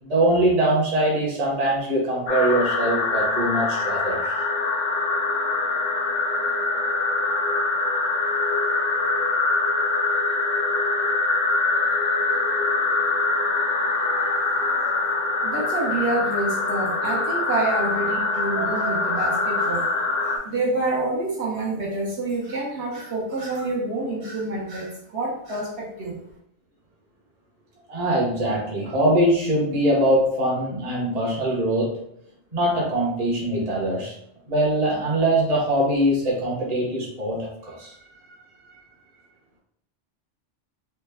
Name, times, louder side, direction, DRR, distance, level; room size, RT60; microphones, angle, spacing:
voice 1, 0.0-4.4 13.9-14.5 27.9-31.9 32.5-34.1 34.5-38.0 38.7-38.8, right 1 dB, 35° right, -3 dB, 0.8 m, -22 dB
sound 1, 2.3-20.4, left 3 dB, 85° left, 0.9 m, -24 dB
voice 2, 15.4-19.9 20.2-26.2, right 2 dB, 65° right, -4 dB, 1.0 m, -27 dB
3.2 x 2.1 x 3.3 m, 0.71 s
omnidirectional pair, 1.3 m